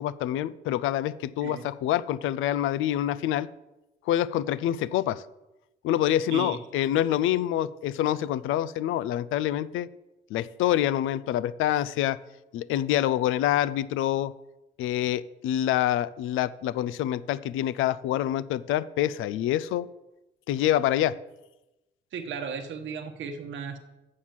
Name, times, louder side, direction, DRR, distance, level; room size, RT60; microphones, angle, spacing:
voice 1, 0.0-3.5 4.1-5.2 5.8-9.9 10.3-12.2 12.5-14.3 14.8-19.9 20.5-21.1, left 12 dB, 85° left, 17 dB, 0.4 m, -26 dB
voice 2, 22.1-23.8, right 6 dB, 70° right, 5 dB, 1.0 m, -35 dB
7.4 x 6.4 x 7.3 m, 1.0 s
cardioid pair, 90°, 20 cm